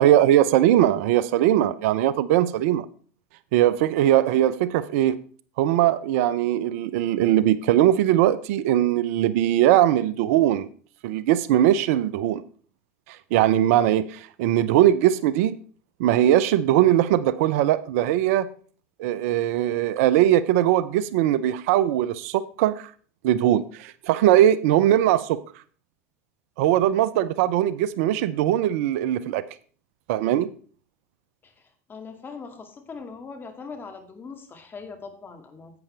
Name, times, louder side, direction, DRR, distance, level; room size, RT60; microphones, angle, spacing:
voice 1, 0.0-2.9 3.5-5.2 5.6-10.7 11.0-12.4 13.1-15.6 16.0-18.5 19.0-22.9 23.2-25.4 26.6-29.4 30.1-30.5, right 12 dB, 65° right, 0.6 m, -20 dB
voice 2, 31.4-35.8, left 4 dB, 25° left, 2.1 m, -41 dB
11.0 x 8.6 x 3.3 m
hypercardioid pair, 95°, 8 cm